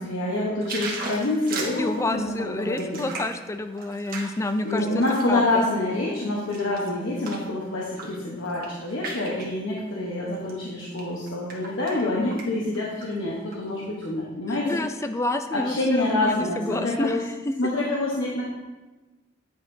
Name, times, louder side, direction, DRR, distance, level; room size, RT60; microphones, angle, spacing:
voice 1, 0.0-3.1 4.6-14.7 15.5-17.2 17.6-18.5, left 2 dB, 85° left, -4 dB, 1.0 m, -26 dB
sound 1, 0.6-5.3 5.8-7.5 7.9-8.2 8.5-9.5 10.3-10.5 10.9-12.0 12.3-12.5 12.7-13.6 14.0-14.1, right 3 dB, 50° right, 1.2 m, -37 dB
voice 2, 1.8-5.6 14.5-17.5, left 2 dB, 15° left, 9 dB, 0.3 m, -29 dB
9.3 x 5.6 x 2.7 m, 1.2 s
head